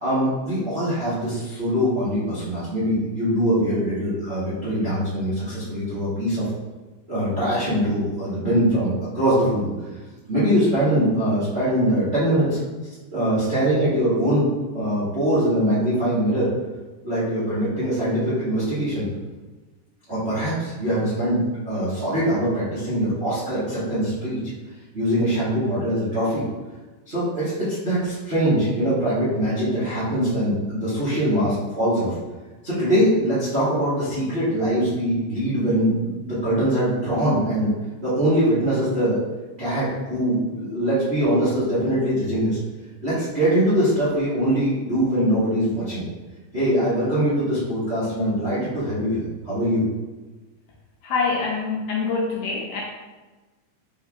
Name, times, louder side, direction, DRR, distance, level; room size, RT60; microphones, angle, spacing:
voice 1, 0.0-6.4 7.1-9.7 10.3-12.6 13.1-14.5 14.7-16.5 17.0-19.0 20.1-24.4 24.9-26.5 27.1-32.2 32.6-37.7 38.0-39.2 39.6-42.6 43.0-46.0 46.5-49.8, equal, 50° right, -12 dB, 0.7 m, -22 dB
voice 2, 51.0-52.8, left 4 dB, 80° left, -3 dB, 1.7 m, -25 dB
5.2 x 3.7 x 2.5 m, 1.2 s
omnidirectional pair, 3.7 m